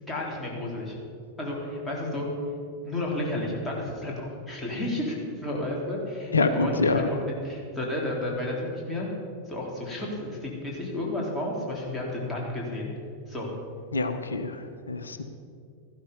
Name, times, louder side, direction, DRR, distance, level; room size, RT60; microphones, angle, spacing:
voice 1, 0.1-1.0 1.4-2.3 2.8-9.1 9.5-12.9 13.3-13.5, left 1 dB, 10° left, -3 dB, 3.7 m, -32 dB
voice 2, 6.3-7.1 13.9-15.2, left 3 dB, 75° left, 9 dB, 0.9 m, -26 dB
14.0 x 12.0 x 5.5 m, 2.3 s
figure-of-eight pair, 90°, 0 cm